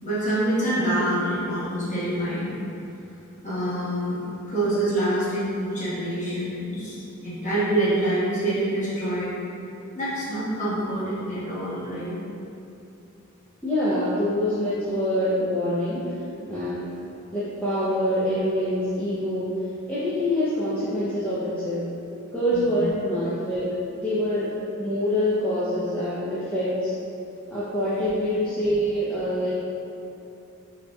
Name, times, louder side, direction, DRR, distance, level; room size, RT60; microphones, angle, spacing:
voice 1, 0.0-2.5 3.4-4.2 4.5-9.3 9.9-12.1 22.5-22.9 27.9-28.1, right 1 dB, 35° left, -11 dB, 1.2 m, -26 dB
voice 2, 13.6-16.1 16.5-16.9 17.3-19.5 19.9-21.9 22.3-23.7 23.9-24.5 24.8-26.9 27.5-29.5, equal, 5° left, -12 dB, 0.4 m, -25 dB
5.3 x 2.7 x 2.2 m, 2.8 s
head